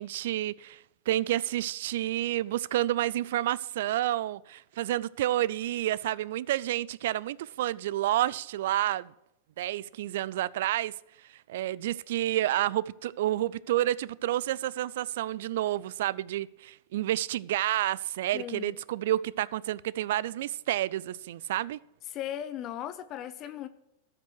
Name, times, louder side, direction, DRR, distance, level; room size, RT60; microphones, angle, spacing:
voice 1, 0.0-9.1 9.6-10.9 11.5-21.8, right 14 dB, 65° right, 0.3 m, -29 dB
voice 2, 18.3-18.8 22.1-23.7, left 11 dB, 40° left, 0.7 m, -37 dB
13.5 x 5.8 x 6.3 m
hypercardioid pair, 105°, 0 cm